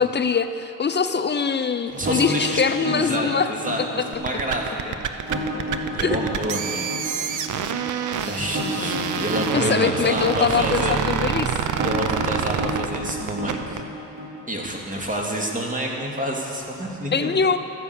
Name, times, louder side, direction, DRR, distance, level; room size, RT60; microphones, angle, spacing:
voice 1, 0.0-3.5 6.0-6.2 8.2-8.3 9.5-11.6 17.1-17.6, left 6 dB, 30° left, 10 dB, 0.6 m, -23 dB
voice 2, 1.9-5.0 5.9-7.5 8.3-11.0 11.8-13.8 14.5-17.3, right 1 dB, 25° right, -1 dB, 2.4 m, -28 dB
sound 1, 1.9-14.9, left 1 dB, 40° right, 3.4 m, -31 dB
sound 2, 4.1-13.8, right 7 dB, 60° right, 0.8 m, -27 dB
13.0 x 7.1 x 8.5 m, 2.7 s
supercardioid pair, 70°, 35 cm